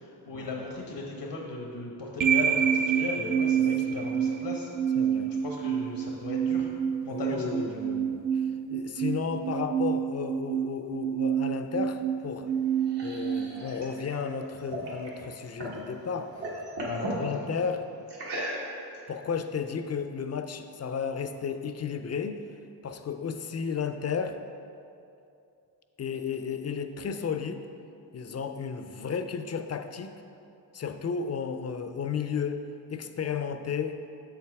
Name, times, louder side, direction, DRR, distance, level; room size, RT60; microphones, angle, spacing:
voice 1, 0.0-6.7 7.0-7.6 16.8-17.4, left 2 dB, 80° left, -1 dB, 1.0 m, -37 dB
sound 1, 2.2-14.3, right 8 dB, 50° right, 0.5 m, -28 dB
voice 2, 5.0-5.3 7.1-12.5 13.0-16.3 17.1-17.9 19.1-22.4 22.8-24.4 26.0-27.6 28.1-30.1 30.7-32.6 32.9-34.0, left 6 dB, 40° left, 7 dB, 0.5 m, -33 dB
sound 2, 12.5-15.8 16.2-17.2 18.1-19.0, right 1 dB, 80° right, 1.6 m, -37 dB
7.2 x 5.8 x 4.7 m, 2.7 s
wide cardioid pair, 100°, 41 cm